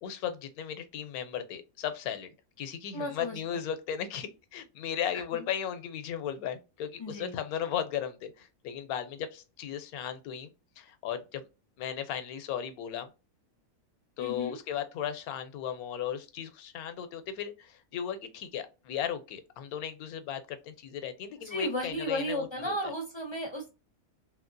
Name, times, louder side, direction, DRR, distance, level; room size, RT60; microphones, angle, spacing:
voice 1, 0.0-2.3 2.6-11.5 11.8-13.1 14.2-22.8, left 9 dB, 85° left, 1.1 m, -36 dB
voice 2, 2.9-3.4 5.3-5.4 7.0-7.3 14.2-14.6 21.4-23.7, equal, 45° left, 0.3 m, -34 dB
2.9 x 2.7 x 2.5 m
omnidirectional pair, 1.5 m